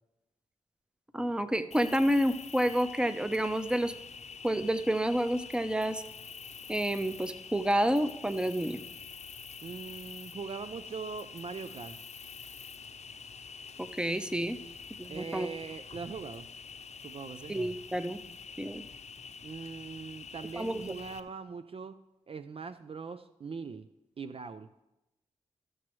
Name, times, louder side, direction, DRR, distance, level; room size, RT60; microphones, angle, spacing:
voice 1, 1.1-3.9 4.4-6.0 6.7-8.8 13.8-14.6 15.0-15.5 17.5-18.2 18.6-18.8 20.5-20.8, equal, 5° right, 10 dB, 0.7 m, -29 dB
Cricket, 1.7-21.2, left 5 dB, 55° left, 0.7 m, -46 dB
voice 2, 9.6-12.0 14.6-14.7 15.1-16.5 17.0-17.6 19.4-23.9 24.2-24.7, right 5 dB, 45° right, 11 dB, 0.4 m, -41 dB
14.0 x 6.2 x 3.1 m, 0.94 s
supercardioid pair, 40°, 13 cm